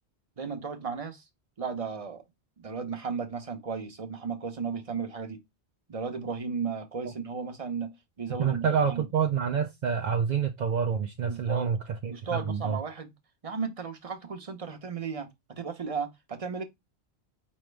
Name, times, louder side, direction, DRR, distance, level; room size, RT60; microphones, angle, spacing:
voice 1, 0.4-1.2 1.6-2.2 2.6-5.4 5.9-9.0 11.2-11.7 12.1-13.1 13.4-16.6, right 5 dB, 35° right, 0.9 m, -35 dB
voice 2, 8.4-12.8, right 7 dB, 55° right, 0.5 m, -27 dB
5.0 x 3.1 x 3.2 m
omnidirectional pair, 1.1 m